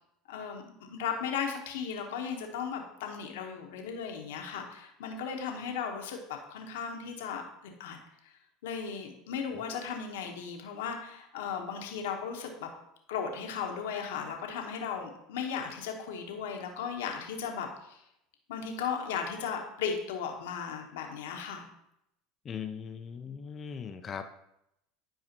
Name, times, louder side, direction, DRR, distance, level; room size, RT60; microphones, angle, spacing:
voice 1, 0.3-8.0 8.6-12.7 13.1-18.0 18.5-21.7, left 6 dB, 80° left, 2 dB, 1.2 m, -36 dB
voice 2, 22.4-24.3, left 7 dB, 35° left, 7 dB, 0.6 m, -39 dB
10.5 x 4.8 x 2.9 m, 0.80 s
hypercardioid pair, 90°, 0 cm